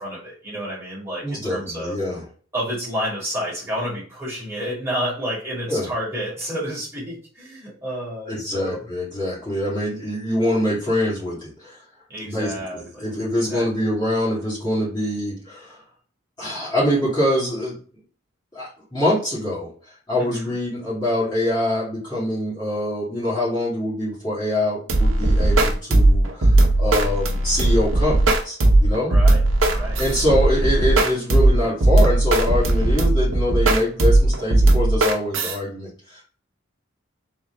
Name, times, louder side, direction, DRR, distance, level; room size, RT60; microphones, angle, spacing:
voice 1, 0.0-2.0 2.5-8.9 12.1-13.1 13.4-13.7 20.2-20.5 29.0-30.0, equal, 15° right, -8 dB, 2.2 m, -30 dB
voice 2, 1.2-2.2 5.7-5.9 8.3-11.8 12.2-15.8 16.4-17.8 18.5-28.2 28.4-29.1 30.0-36.2, left 1 dB, 20° left, -8 dB, 2.1 m, -24 dB
sound 1, 24.9-35.6, right 2 dB, 75° right, 0.9 m, -17 dB
3.7 x 3.6 x 3.3 m, 0.44 s
head